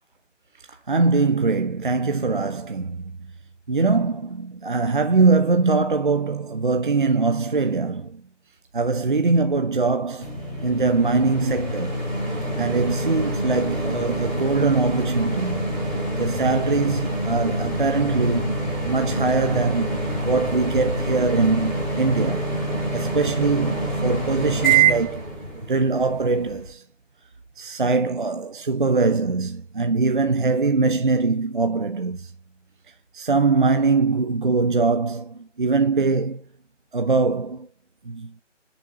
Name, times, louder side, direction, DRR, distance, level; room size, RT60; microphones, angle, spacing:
voice 1, 0.9-3.0 3.7-8.2 8.7-10.3 10.6-12.0 12.6-15.6 16.2-18.5 18.9-20.0 20.2-22.4 22.9-25.2 25.7-26.8 27.6-32.3 33.1-36.4 36.9-37.7 38.1-38.3, right 4 dB, 40° right, 0.7 m, -22 dB
sound 1, 10.2-26.7, right 2 dB, ahead, 4.0 m, -26 dB
8.9 x 7.1 x 3.7 m
figure-of-eight pair, 170°, 37 cm